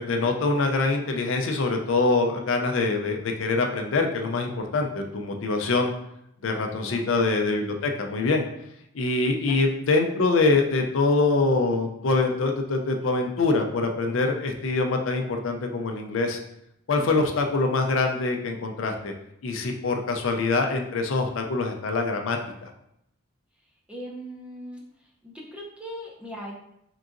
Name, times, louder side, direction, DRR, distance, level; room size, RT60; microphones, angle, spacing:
voice 1, 0.0-5.9 6.4-8.4 8.9-16.4 16.9-19.1 19.4-22.7, left 3 dB, 70° left, 4 dB, 0.5 m, -24 dB
voice 2, 6.8-7.2 9.5-9.6 17.0-17.2 23.9-26.5, equal, 5° right, -2 dB, 0.6 m, -40 dB
3.9 x 3.6 x 2.5 m, 0.78 s
head